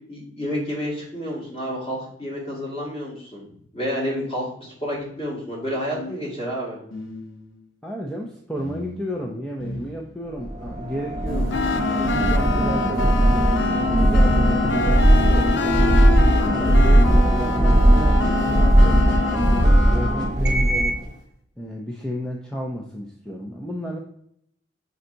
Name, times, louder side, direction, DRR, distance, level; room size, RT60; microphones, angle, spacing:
voice 1, 0.1-3.5 3.7-6.8, equal, 30° left, -4 dB, 2.2 m, -29 dB
sound 1, 4.9-5.0 5.9-7.7 8.6-10.5 11.3-15.8 16.6-21.1, left 2 dB, 90° left, 0.9 m, -40 dB
voice 2, 7.8-11.5 12.0-13.5 14.0-16.0 16.3-21.0 21.6-24.0, equal, 5° left, -1 dB, 0.5 m, -32 dB
sound 2, 10.4-21.0, right 1 dB, 20° right, 1.1 m, -18 dB
sound 3, 11.5-20.3, left 4 dB, 65° left, 0.5 m, -26 dB
5.4 x 4.6 x 3.9 m, 0.68 s
head